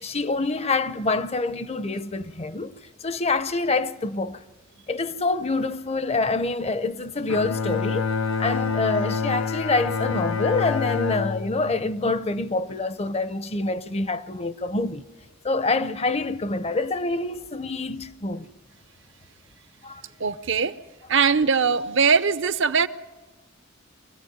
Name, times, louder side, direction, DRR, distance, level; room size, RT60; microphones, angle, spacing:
voice 1, 0.0-2.7 3.0-4.4 4.9-8.1 8.4-15.1 15.4-18.5 19.8-20.0, left 3 dB, 30° left, 0.7 m, -26 dB
Bowed string instrument, 7.3-12.7, left 5 dB, 70° left, 0.7 m, -27 dB
voice 2, 20.2-20.7 21.1-22.9, right 5 dB, 65° right, 0.8 m, -21 dB
24.5 x 16.5 x 9.4 m
head